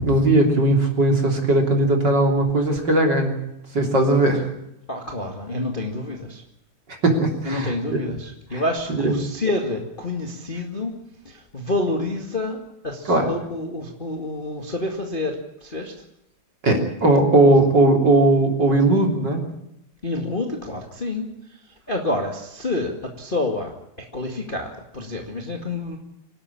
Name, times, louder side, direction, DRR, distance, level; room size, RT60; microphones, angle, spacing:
voice 1, 0.0-3.4 3.7-4.5 7.0-8.0 8.5-8.6 8.9-9.2 13.1-13.3 16.6-19.4, right 2 dB, 25° right, 3 dB, 3.3 m, -18 dB
voice 2, 4.9-6.4 7.4-10.9 11.2-15.9 20.0-21.6 21.9-26.0, left 2 dB, 30° left, 2 dB, 0.9 m, -28 dB
25.5 x 12.5 x 9.8 m, 0.81 s
omnidirectional pair, 4.8 m